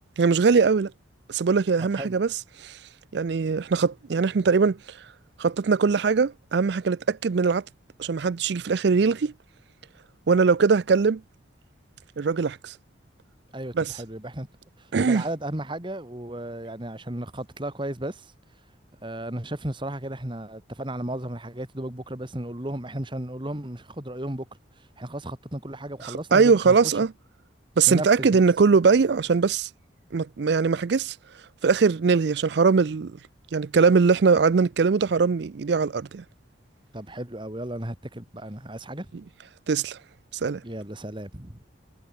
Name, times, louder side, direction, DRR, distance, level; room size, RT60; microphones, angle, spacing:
voice 1, 0.2-0.9 1.3-2.3 2.6-2.7 3.1-4.8 5.4-7.6 8.0-9.3 10.3-11.2 12.2-12.7 13.8-13.9 14.9-15.2 26.0-27.1 27.8-29.7 30.1-31.1 31.6-33.1 33.5-36.2 39.7-40.0 40.4-40.6, right 5 dB, 60° right, 0.4 m, -21 dB
voice 2, 13.5-14.5 14.8-18.3 19.0-24.5 25.0-26.9 27.9-28.4 36.9-39.1 40.6-41.6, right 1 dB, 25° right, 1.9 m, -34 dB
head